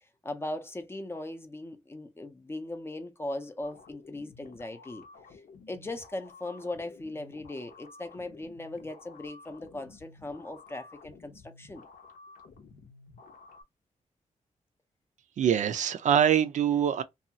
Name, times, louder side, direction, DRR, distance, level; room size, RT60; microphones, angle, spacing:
voice 1, 0.2-5.0 5.7-11.9, left 2 dB, 20° left, 0.5 m, -39 dB
sound 1, 3.6-13.6, left 4 dB, 80° left, 0.8 m, -53 dB
voice 2, 15.4-17.0, right 9 dB, 65° right, 0.5 m, -24 dB
2.7 x 2.3 x 2.7 m
wide cardioid pair, 120°, 13 cm